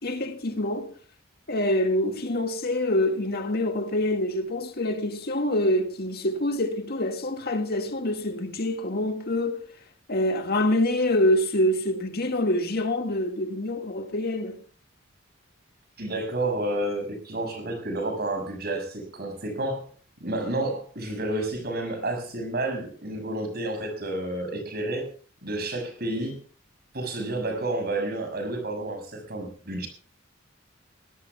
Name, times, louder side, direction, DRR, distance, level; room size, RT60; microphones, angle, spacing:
voice 1, 0.0-0.9 1.5-9.6 10.1-14.6, left 1 dB, 50° left, 2.0 m, -26 dB
voice 2, 16.0-19.8 20.2-25.1 25.4-26.4 26.9-29.9, right 2 dB, 50° right, 6.1 m, -30 dB
23.0 x 17.5 x 2.3 m
head